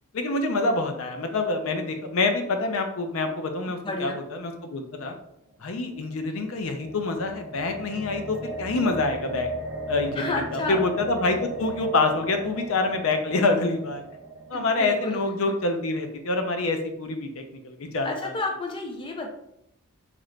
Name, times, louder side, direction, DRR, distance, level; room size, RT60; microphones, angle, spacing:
voice 1, 0.1-4.1 4.4-5.1 5.6-9.5 9.9-14.0 14.5-18.3, left 3 dB, 70° left, 5 dB, 0.5 m, -26 dB
voice 2, 3.7-4.2 10.1-10.8 14.5-15.2 18.0-19.3, left 3 dB, 25° left, 2 dB, 0.5 m, -31 dB
sound 1, 5.8-15.9, right 1 dB, 55° right, 0.6 m, -37 dB
2.9 x 2.5 x 3.2 m, 0.77 s
head